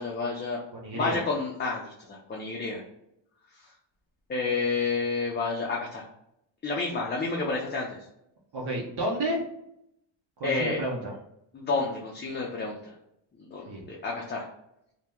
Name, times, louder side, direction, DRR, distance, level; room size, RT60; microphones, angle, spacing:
voice 1, 0.0-0.6 0.9-2.8 4.3-6.0 6.6-8.0 10.4-10.8 11.5-12.9 13.4-14.4, left 4 dB, 25° left, -2 dB, 0.4 m, -30 dB
voice 2, 0.7-1.2 8.5-9.4 10.4-11.1 13.7-13.9, right 1 dB, 60° right, -3 dB, 0.8 m, -31 dB
2.8 x 2.1 x 3.4 m, 0.79 s
cardioid pair, 130°, 46 cm